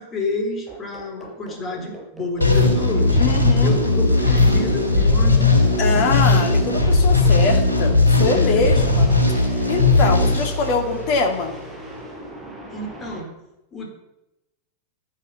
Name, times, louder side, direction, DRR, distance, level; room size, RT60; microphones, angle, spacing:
voice 1, 0.0-3.2 3.6-6.0 8.1-8.6 12.7-13.3 13.7-13.9, left 2 dB, 25° left, 2 dB, 4.1 m, -30 dB
sound 1, 0.7-13.2, right 1 dB, 10° right, 5.2 m, -38 dB
sound 2, 2.4-11.3, left 2 dB, 80° left, 3.7 m, -17 dB
voice 2, 3.2-3.8 5.8-11.6, left 4 dB, 45° left, 5 dB, 2.7 m, -24 dB
12.5 x 10.5 x 7.2 m, 0.93 s
figure-of-eight pair, 90°, 0 cm